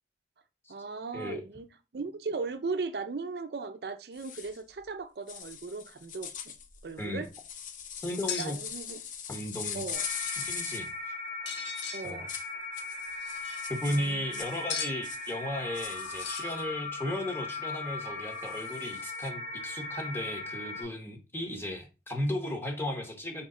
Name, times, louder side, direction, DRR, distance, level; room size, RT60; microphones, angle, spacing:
voice 1, 0.7-1.7 1.9-6.5 6.8-7.3 8.4-9.0 9.7-10.0 11.9-12.3 13.9-14.4, right 4 dB, 65° right, 0.5 m, -37 dB
sound 1, 4.2-4.6 5.3-10.9 11.7-12.5 12.7-14.6 15.0-15.3 15.7-16.5 18.4-19.3, left 8 dB, 45° left, 0.5 m, -41 dB
voice 2, 8.0-8.6 9.3-9.9 10.4-11.1 12.0-12.3 13.7-23.4, left 1 dB, 15° left, 0.8 m, -35 dB
sound 2, 8.3-8.5 9.8-10.5 11.5-12.0 13.1-13.7 14.7-15.0 16.1-16.6, left 7 dB, 90° left, 0.7 m, -38 dB
sound 3, 9.9-20.8, left 2 dB, 70° left, 2.5 m, -39 dB
4.3 x 3.2 x 3.7 m
head